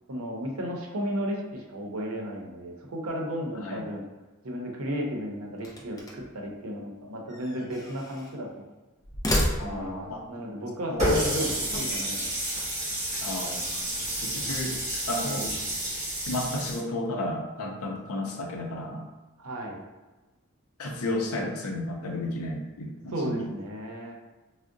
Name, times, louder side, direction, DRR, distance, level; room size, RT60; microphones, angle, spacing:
voice 1, 0.1-4.0 4.4-8.6 9.6-12.3 15.2-15.5 19.4-19.8 23.1-24.1, equal, 80° right, 0 dB, 0.6 m, -34 dB
voice 2, 3.6-3.9 9.6-10.2 10.9-11.5 13.2-13.9 14.2-14.8 15.1-15.5 16.2-19.1 20.8-23.5, left 1 dB, 90° left, 1 dB, 0.5 m, -33 dB
sound 1, 5.6-6.4 7.3-8.4 9.0-10.1, equal, 15° left, 0.3 m, -31 dB
Water tap faucet, 11.0-16.8, equal, 30° right, 1.3 m, -30 dB
3.6 x 2.1 x 2.5 m, 1.2 s
head